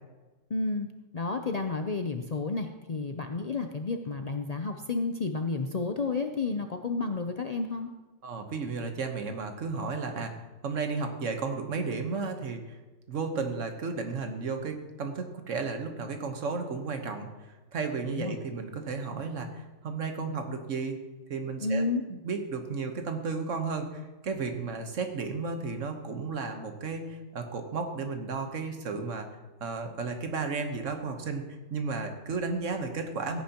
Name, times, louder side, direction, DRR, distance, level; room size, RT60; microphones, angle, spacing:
voice 1, 0.5-0.9 1.1-7.9 18.1-18.4 21.6-22.0, left 3 dB, 45° left, 5 dB, 0.5 m, -31 dB
voice 2, 8.2-10.3 10.6-12.8 13.1-17.3 17.7-21.0 21.3-21.8 22.1-29.3 29.6-31.4 31.7-33.4, right 4 dB, 75° right, 6 dB, 1.5 m, -33 dB
16.0 x 9.3 x 2.9 m, 1.2 s
omnidirectional pair, 1.3 m